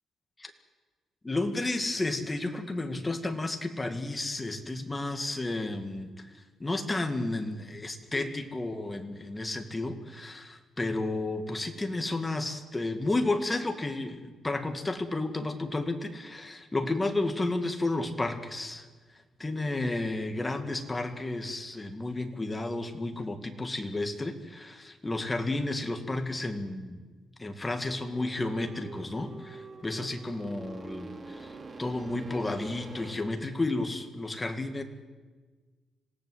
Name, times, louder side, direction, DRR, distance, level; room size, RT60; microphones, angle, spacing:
voice 1, 1.2-6.3 6.6-18.9 19.4-27.0 27.4-34.8, left 2 dB, 15° left, 6 dB, 2.2 m, -32 dB
sound 1, 28.1-33.2, right 3 dB, 30° right, 2.5 m, -45 dB
26.5 x 17.5 x 8.1 m, 1.4 s
cardioid pair, 125°, 0 cm